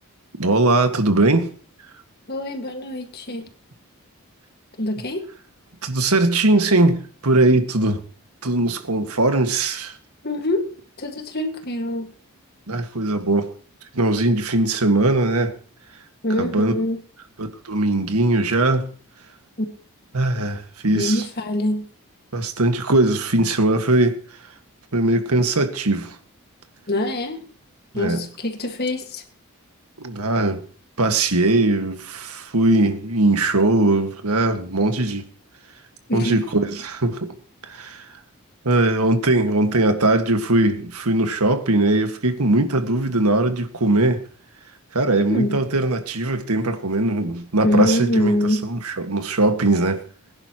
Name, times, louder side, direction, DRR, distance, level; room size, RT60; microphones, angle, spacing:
voice 1, 0.4-1.5 5.8-8.0 8.4-9.9 12.7-13.5 13.9-15.5 16.4-16.7 17.4-18.9 20.1-21.2 22.3-24.2 24.9-26.2 27.9-28.2 30.0-30.6 31.0-35.3 36.1-37.3 37.7-38.1 38.7-44.2 44.9-48.4 48.6-50.0, right 2 dB, 85° right, 1.8 m, -20 dB
voice 2, 2.3-3.4 4.8-5.2 10.2-10.7 11.0-12.1 16.2-17.0 19.6-19.7 20.9-21.8 26.9-27.4 27.9-29.2 36.1-36.4 45.3-45.6 47.6-48.6, left 1 dB, 45° left, 1.8 m, -24 dB
21.5 x 10.5 x 3.0 m
head